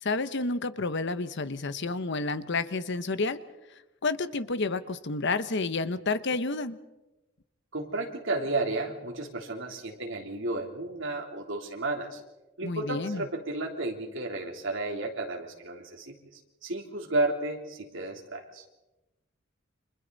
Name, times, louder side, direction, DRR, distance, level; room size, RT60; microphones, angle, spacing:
voice 1, 0.0-3.4 4.0-6.8 12.6-13.3, left 3 dB, 60° left, 12 dB, 1.1 m, -30 dB
voice 2, 7.7-12.2 12.6-16.1 16.6-18.6, right 2 dB, 65° right, 1 dB, 3.5 m, -32 dB
30.0 x 26.5 x 4.1 m, 1.0 s
head